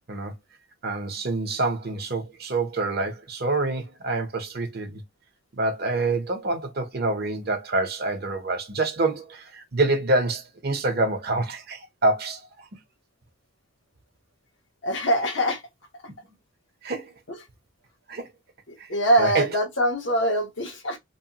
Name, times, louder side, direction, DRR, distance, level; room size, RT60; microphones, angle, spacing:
voice 1, 0.8-5.0 5.5-12.7 16.8-17.1 18.1-18.3 18.8-18.9 19.2-19.5, right 2 dB, 45° right, 0.8 m, -26 dB
voice 2, 14.8-15.6 17.3-17.4 18.7-21.0, right 1 dB, 60° left, 1.0 m, -23 dB
3.0 x 2.1 x 2.8 m
head